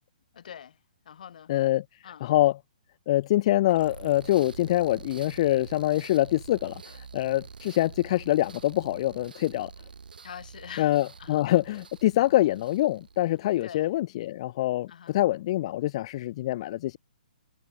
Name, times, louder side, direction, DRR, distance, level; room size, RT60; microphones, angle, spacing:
voice 1, 0.3-0.8 1.1-1.5 2.0-2.3 10.2-10.9 11.2-11.4 13.6-13.9 14.9-15.2, left 8 dB, 65° left, 2.2 m, -44 dB
voice 2, 1.5-2.6 3.1-9.7 10.8-17.0, left 15 dB, 45° left, 0.3 m, -25 dB
sound 1, 3.7-13.7, right 5 dB, 80° right, 5.7 m, -46 dB
hypercardioid pair, 135°, 5 cm